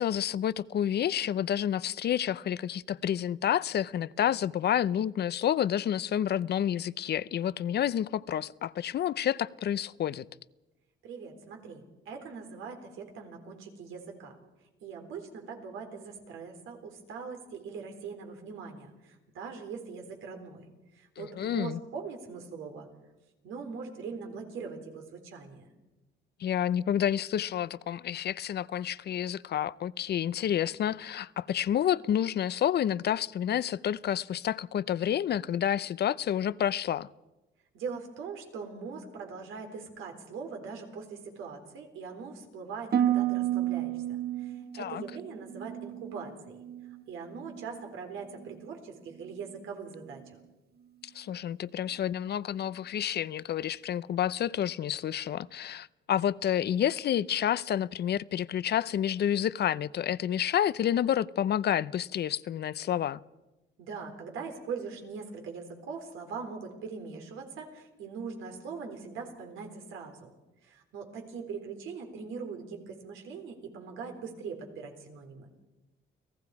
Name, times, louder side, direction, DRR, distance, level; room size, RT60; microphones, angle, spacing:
voice 1, 0.0-10.3 21.2-21.8 26.4-37.1 44.7-45.0 51.0-63.2, left 10 dB, 55° left, 0.6 m, -29 dB
voice 2, 11.0-14.3 14.8-20.7 21.0-22.9 23.4-25.7 37.7-46.6 47.1-50.4 63.8-70.3 70.6-75.5, right 5 dB, 90° right, 3.9 m, -41 dB
Harp, 42.9-47.0 47.3-47.9 48.4-48.7, right 11 dB, 50° right, 1.2 m, -32 dB
29.5 x 18.0 x 4.8 m
cardioid pair, 90°, 20 cm